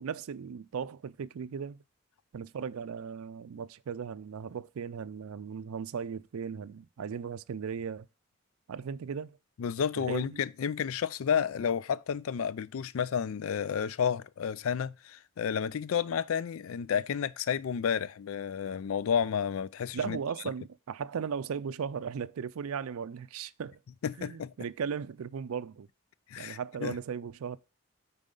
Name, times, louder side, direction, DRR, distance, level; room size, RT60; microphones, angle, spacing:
voice 1, 0.0-1.8 2.3-8.1 8.7-9.4 10.0-10.4 19.9-23.8 24.2-25.9 26.4-27.6, right 6 dB, 80° right, 0.4 m, -37 dB
voice 2, 9.6-20.2 24.0-24.5 26.3-26.9, left 7 dB, 75° left, 0.4 m, -31 dB
9.1 x 4.1 x 3.8 m
head